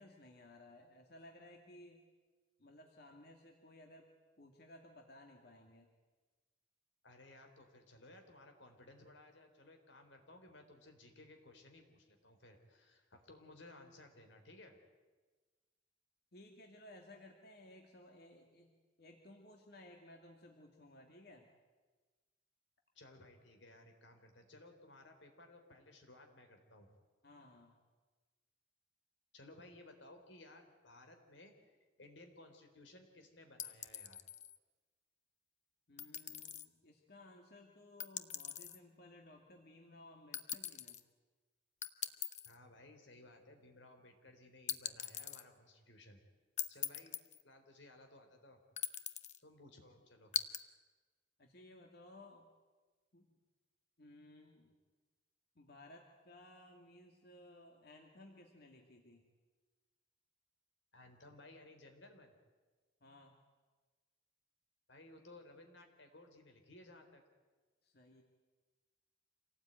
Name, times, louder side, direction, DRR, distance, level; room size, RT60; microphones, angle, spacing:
voice 1, 0.0-2.0 2.6-5.9 16.3-21.5 27.2-27.8 35.9-41.0 51.4-52.5 53.1-53.3 54.0-54.8 55.6-59.3 63.0-63.3 67.8-68.2, left 1 dB, 60° left, 2 dB, 2.3 m, -58 dB
voice 2, 7.0-14.8 22.9-27.0 29.3-31.7 32.0-34.2 42.4-46.2 46.7-47.1 47.4-48.6 49.4-50.3 60.9-62.3 64.9-67.2, left 2 dB, 85° left, 5 dB, 4.0 m, -59 dB
sound 1, 33.6-34.6 36.0-36.7 38.0-38.8 40.3-41.0 41.8-42.6 44.7-45.4 46.6-47.4 48.8-49.4 50.3-50.6, left 10 dB, 40° left, 0.9 m, -41 dB
26.5 x 18.0 x 9.2 m, 1.3 s
head